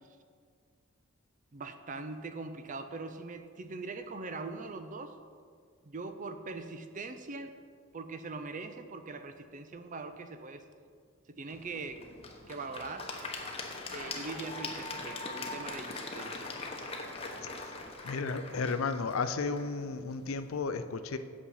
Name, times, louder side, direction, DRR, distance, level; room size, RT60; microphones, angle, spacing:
voice 1, 1.5-5.2 5.8-7.6 7.9-10.7 11.3-12.0 12.5-13.1 13.9-16.5, right 3 dB, 40° right, 9 dB, 0.5 m, -41 dB
Applause / Crowd, 11.5-20.6, left 3 dB, 30° left, 0.9 m, -42 dB
voice 2, 18.0-21.2, left 4 dB, 75° left, 10 dB, 0.5 m, -33 dB
8.5 x 7.4 x 5.6 m, 2.1 s
head